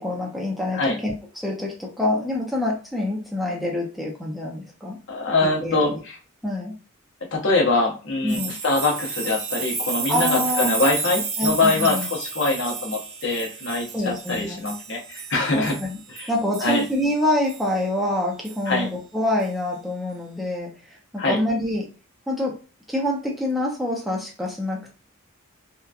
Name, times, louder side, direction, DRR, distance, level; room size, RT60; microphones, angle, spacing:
voice 1, 0.0-5.0 5.4-6.0 6.4-6.7 8.2-8.5 10.1-10.8 11.4-12.1 13.9-14.6 15.5-16.0 16.3-21.9 22.3-22.6 22.9-24.9, left 1 dB, ahead, -3 dB, 0.5 m, -26 dB
voice 2, 5.1-6.1 7.3-15.8 16.1-16.3 16.6-16.8 18.7-18.9 21.2-21.4, left 2 dB, 60° left, 0 dB, 0.8 m, -23 dB
sound 1, 8.3-16.9 17.5-17.6 18.5-18.6, right 4 dB, 70° right, 0.6 m, -31 dB
2.8 x 2.2 x 2.3 m, 0.36 s
head